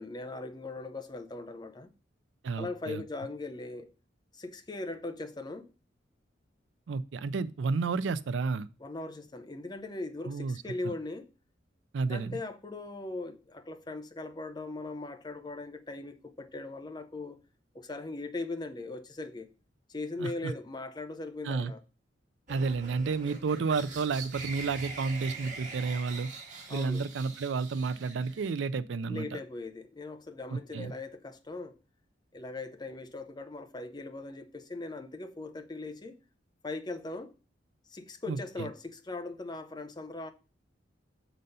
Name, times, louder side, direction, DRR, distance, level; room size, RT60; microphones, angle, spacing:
voice 1, 0.0-1.9 2.6-3.9 4.3-5.7 8.8-11.3 12.1-17.4 17.7-19.5 19.9-21.8 26.7-27.0 29.1-31.8 32.3-36.2 36.6-37.3 37.9-40.3, left 2 dB, 25° left, 0.6 m, -39 dB
voice 2, 2.4-3.0 6.9-8.7 10.3-10.9 11.9-12.4 20.2-20.5 21.4-21.7 22.5-26.3 26.7-29.4 30.5-30.9 38.3-38.7, right 4 dB, 75° right, 0.4 m, -31 dB
sound 1, 22.5-28.7, right 4 dB, 45° right, 1.6 m, -44 dB
6.4 x 4.0 x 5.4 m
head